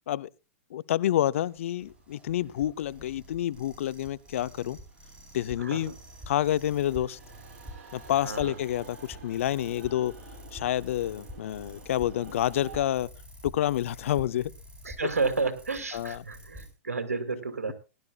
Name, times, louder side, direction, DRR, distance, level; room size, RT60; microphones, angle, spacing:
voice 1, 0.7-4.8 5.3-5.9 6.3-7.2 7.9-10.1 10.5-13.1 13.4-14.5 15.9-16.2, left 12 dB, 60° left, 0.6 m, -28 dB
sound 1, 1.3-16.7, equal, 15° right, 4.0 m, -48 dB
sound 2, 1.3-12.9, right 5 dB, 50° right, 6.3 m, -52 dB
voice 2, 5.6-5.9 8.2-8.6 14.8-17.7, right 4 dB, 85° right, 2.4 m, -31 dB
20.5 x 12.0 x 2.4 m
hypercardioid pair, 110°, 8 cm